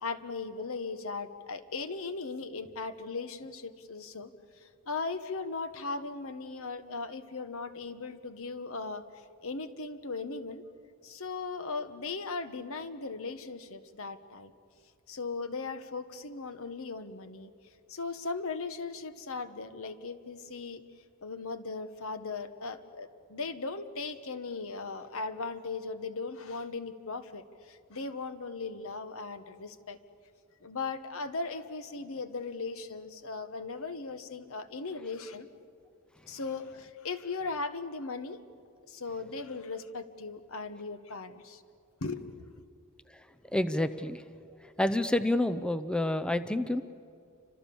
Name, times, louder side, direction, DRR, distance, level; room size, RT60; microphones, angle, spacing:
voice 1, 0.0-4.3 4.6-9.0 9.4-10.6 11.0-14.5 15.1-17.5 17.9-20.8 21.2-30.0 30.6-35.5 36.3-38.4 38.9-41.6 42.0-42.4, left 4 dB, 65° left, 11 dB, 1.3 m, -38 dB
voice 2, 43.5-44.2 44.6-46.8, left 1 dB, 5° left, 10 dB, 0.6 m, -29 dB
29.5 x 26.0 x 7.1 m, 2.4 s
head